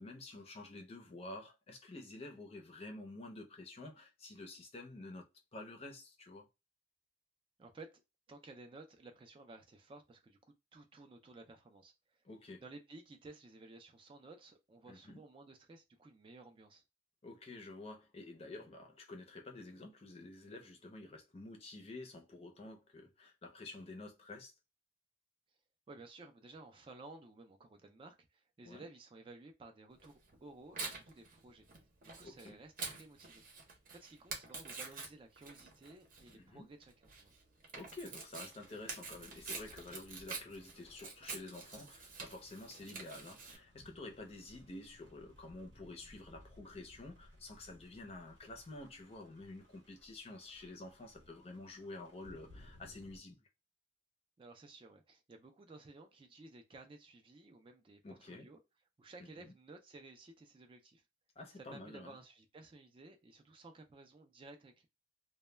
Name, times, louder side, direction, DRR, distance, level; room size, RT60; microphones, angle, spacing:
voice 1, 0.0-6.5 12.2-12.6 14.9-15.2 17.2-24.5 28.6-28.8 32.2-32.6 36.3-36.7 37.8-53.5 58.0-58.5 59.2-59.5 61.4-62.2, left 2 dB, 30° left, 0.5 m, -50 dB
voice 2, 7.6-8.0 8.3-12.2 12.6-16.8 25.9-31.7 32.0-33.4 33.9-37.3 54.4-58.6 59.0-61.0 61.6-64.9, right 2 dB, 30° right, 0.3 m, -55 dB
Tearing, 30.0-43.6, right 4 dB, 45° right, 0.7 m, -47 dB
sound 1, 39.0-53.2, left 1 dB, 85° right, 0.9 m, -62 dB
2.2 x 2.1 x 3.1 m
head